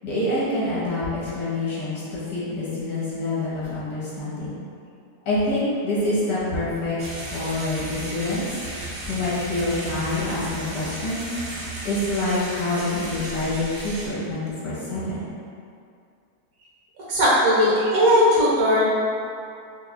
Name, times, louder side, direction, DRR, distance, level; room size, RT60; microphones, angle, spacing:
voice 1, 0.0-4.5 5.2-7.0 7.3-8.5 9.0-11.3 11.8-15.3, left 2 dB, 70° left, -9 dB, 1.6 m, -26 dB
sound 1, 7.0-14.1, right 2 dB, 85° right, 1.4 m, -35 dB
voice 2, 17.1-18.8, equal, 60° right, -8 dB, 1.5 m, -18 dB
5.8 x 2.3 x 2.2 m, 2.4 s
omnidirectional pair, 1.8 m